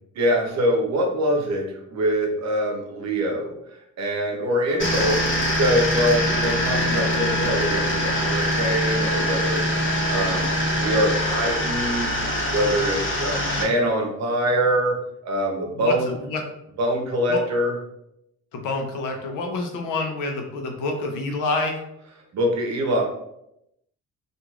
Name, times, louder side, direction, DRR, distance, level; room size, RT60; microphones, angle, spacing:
voice 1, 0.1-3.5 4.0-5.2 5.6-12.2 12.5-14.9 15.2-16.1 16.8-17.8 22.3-23.0, equal, 60° right, 1 dB, 0.8 m, -24 dB
sound 1, 4.8-13.6, equal, 40° left, 1.0 m, -23 dB
voice 2, 15.7-16.4 17.3-17.4 18.5-21.8, left 3 dB, 85° left, 3 dB, 0.6 m, -28 dB
3.0 x 2.5 x 2.4 m, 0.81 s
cardioid pair, 90°, 30 cm